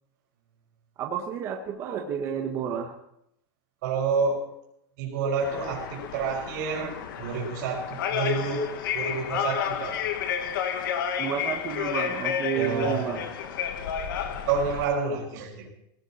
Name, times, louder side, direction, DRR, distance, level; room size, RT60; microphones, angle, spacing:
voice 1, 1.0-3.0 11.2-13.3, right 8 dB, 25° right, 2 dB, 1.2 m, -31 dB
voice 2, 3.8-4.4 5.0-8.6 8.9-10.0 12.5-13.1 14.4-15.7, right 5 dB, 55° right, -6 dB, 4.9 m, -29 dB
sound 1, 5.4-14.8, left 8 dB, 70° left, 1.7 m, -31 dB
18.0 x 17.5 x 4.3 m, 0.78 s
supercardioid pair, 180°, 11 cm